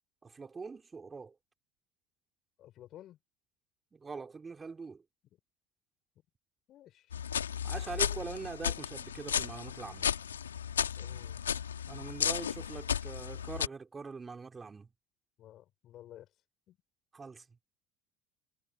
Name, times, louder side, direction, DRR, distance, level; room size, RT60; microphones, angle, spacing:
voice 1, 0.2-1.4 3.9-5.0 7.6-10.1 11.9-14.9 17.1-17.6, right 4 dB, 25° right, 3.8 m, -43 dB
voice 2, 2.6-3.2 6.7-7.1 11.0-11.4 15.4-16.3 16.7-16.8, left 12 dB, 50° left, 5.0 m, -53 dB
sound 1, 7.1-13.7, left 8 dB, 85° left, 2.1 m, -34 dB
hypercardioid pair, 70°, 0 cm